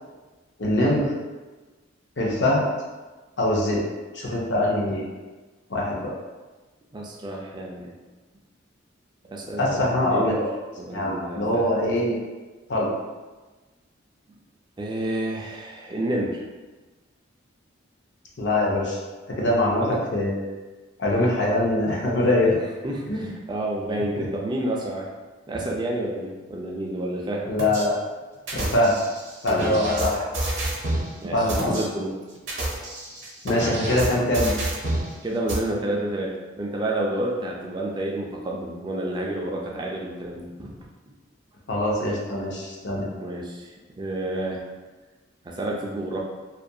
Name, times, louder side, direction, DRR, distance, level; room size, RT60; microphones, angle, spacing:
voice 1, 0.6-1.1 2.2-2.7 3.4-3.8 4.1-5.1 5.7-6.1 9.6-10.5 10.9-12.2 12.7-12.9 18.4-19.0 19.3-19.8 20.1-20.4 21.0-22.6 23.1-23.3 24.2-24.3 27.5-28.0 28.5-28.9 29.4-30.3 31.3-31.8 33.4-34.5 41.7-43.1, left 1 dB, 60° left, -3 dB, 0.6 m, -23 dB
voice 2, 6.9-7.9 9.2-10.4 10.8-11.7 14.8-16.4 19.7-20.0 22.8-25.1 25.5-27.5 29.5-29.8 31.2-32.2 35.2-40.7 41.1-41.2 43.2-44.6 45.4-46.2, right 1 dB, 25° right, -1 dB, 0.3 m, -30 dB
sound 1, 27.6-27.9 28.5-31.1 31.5-31.8 32.4-35.1 35.5-35.6, right 1 dB, 60° right, 0.7 m, -28 dB
2.4 x 2.2 x 2.6 m, 1.3 s
head